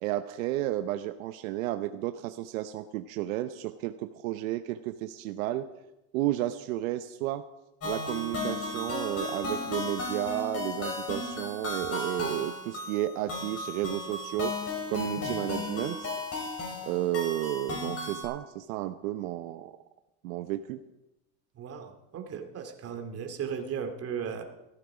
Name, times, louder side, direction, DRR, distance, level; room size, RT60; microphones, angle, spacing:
voice 1, 0.0-5.7 6.1-7.4 7.8-14.6 14.9-16.1 16.8-19.8 20.2-20.8, right 14 dB, 75° right, 9 dB, 0.9 m, -32 dB
sound 1, 7.8-18.3, left 2 dB, 35° left, 6.1 m, -35 dB
voice 2, 21.5-24.4, right 7 dB, 35° right, 5 dB, 2.4 m, -36 dB
16.0 x 13.5 x 4.9 m, 0.94 s
supercardioid pair, 120°, 41 cm